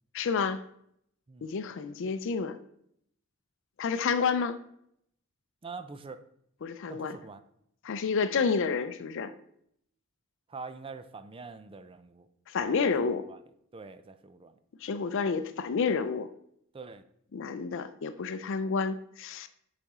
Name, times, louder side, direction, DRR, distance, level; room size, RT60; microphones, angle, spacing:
voice 1, 0.1-0.6 1.4-2.6 3.8-4.6 6.6-7.2 7.8-9.3 12.5-13.2 14.8-16.3 17.3-19.5, left 5 dB, 65° left, 11 dB, 0.4 m, -29 dB
voice 2, 5.6-6.2 6.9-7.4 10.5-12.3 12.6-13.4 13.7-14.5 16.7-17.0, right 4 dB, 25° right, 11 dB, 0.4 m, -44 dB
7.0 x 5.0 x 3.6 m, 0.71 s
head